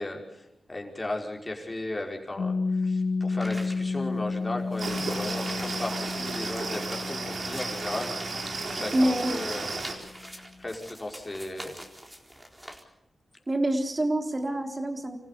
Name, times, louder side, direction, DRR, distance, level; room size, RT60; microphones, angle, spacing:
voice 1, 0.0-8.1 8.4-10.0 10.6-11.8, left 2 dB, 25° left, 1 dB, 5.5 m, -36 dB
Piano, 2.4-9.7, left 4 dB, 70° left, 3.0 m, -32 dB
sound 1, 3.4-12.8, equal, 10° right, 4.2 m, -46 dB
sound 2, 4.8-9.9, right 3 dB, 70° right, 4.6 m, -33 dB
voice 2, 8.9-9.3 13.5-15.2, right 1 dB, 35° right, 4 dB, 3.9 m, -26 dB
26.5 x 15.5 x 8.4 m, 0.85 s
cardioid pair, 55°, 0 cm